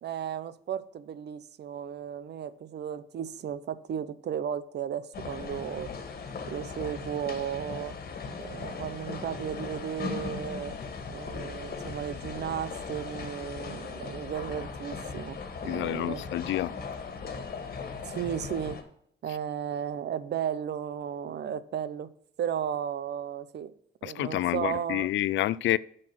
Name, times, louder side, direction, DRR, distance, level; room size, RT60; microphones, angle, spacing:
voice 1, 0.0-5.9 6.5-8.0 8.4-10.8 11.1-16.2 18.0-18.8 19.2-22.1 22.4-23.7 24.0-25.1, right 9 dB, 60° right, 0.7 m, -34 dB
sound 1, 5.1-18.8, left 5 dB, 50° left, 1.8 m, -38 dB
voice 2, 15.7-16.7 24.0-25.8, left 14 dB, 70° left, 0.4 m, -28 dB
7.6 x 6.6 x 6.0 m
cardioid pair, 90°, 20 cm